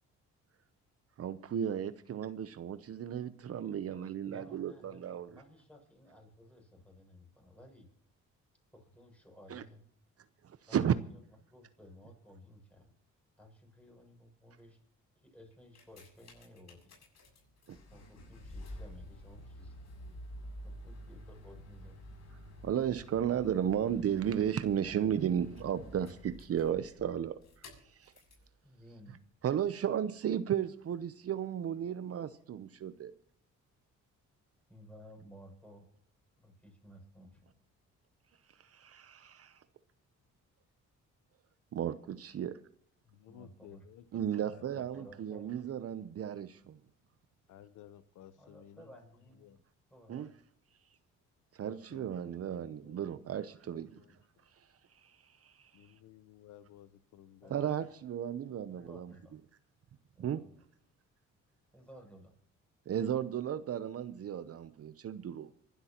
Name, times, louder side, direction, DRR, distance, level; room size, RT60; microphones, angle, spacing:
voice 1, 1.2-5.3 9.5-9.6 10.4-10.9 17.7-17.8 22.6-27.4 27.8-28.1 29.4-33.1 38.6-39.6 41.7-42.6 44.1-46.8 50.1-50.3 51.5-54.0 55.0-55.7 57.5-59.1 60.2-60.4 62.9-65.5, right 9 dB, 50° right, 13 dB, 0.8 m, -34 dB
voice 2, 4.3-7.9 8.7-9.8 10.7-11.2 11.5-12.9 13.4-14.8 15.2-16.9 17.3-17.4 17.9-19.8 20.6-22.0 28.6-29.2 34.7-35.9 36.4-37.5 43.3-43.8 44.1-45.6 48.4-49.6 49.9-50.4 53.8-54.2 57.4-57.6 58.7-59.4 60.1-60.5 61.7-62.3, equal, 5° left, 2 dB, 6.9 m, -56 dB
sound 1, 15.5-28.5 29.2-29.3, equal, 60° left, 7.2 m, -50 dB
voice 3, 43.1-44.0 44.5-44.8 47.5-48.9 49.4-49.6 51.6-52.4 52.8-53.0 53.4-54.2 55.7-57.6, left 11 dB, 80° left, 13 dB, 0.9 m, -56 dB
25.0 x 12.0 x 3.0 m, 0.63 s
cardioid pair, 90°, 30 cm